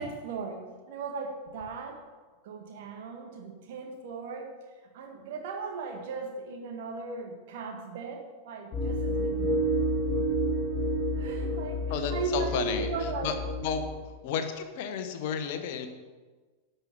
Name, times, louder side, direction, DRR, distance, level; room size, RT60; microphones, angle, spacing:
voice 1, 0.0-2.0 2.4-4.5 4.9-9.7 11.1-13.4, right 4 dB, 50° right, 3 dB, 1.9 m, -37 dB
sound 1, 8.7-14.0, equal, 30° left, 3.7 m, -30 dB
voice 2, 11.9-13.3 13.6-15.9, left 7 dB, 50° left, 7 dB, 1.1 m, -33 dB
11.5 x 5.7 x 7.1 m, 1.3 s
figure-of-eight pair, 90°, 0 cm